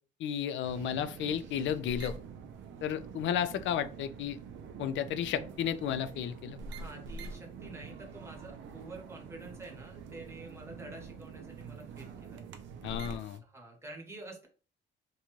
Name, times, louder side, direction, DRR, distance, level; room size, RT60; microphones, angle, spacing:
voice 1, 0.2-2.1 2.8-4.4 4.8-6.6 12.8-13.4, left 9 dB, 70° left, 12 dB, 0.4 m, -33 dB
sound 1, 0.6-13.4, right 5 dB, 70° right, 0.5 m, -46 dB
voice 2, 6.7-12.4 12.9-13.2 13.4-14.5, right 2 dB, 15° right, 1 dB, 1.0 m, -48 dB
2.6 x 2.3 x 3.0 m, 0.38 s
cardioid pair, 90°, 20 cm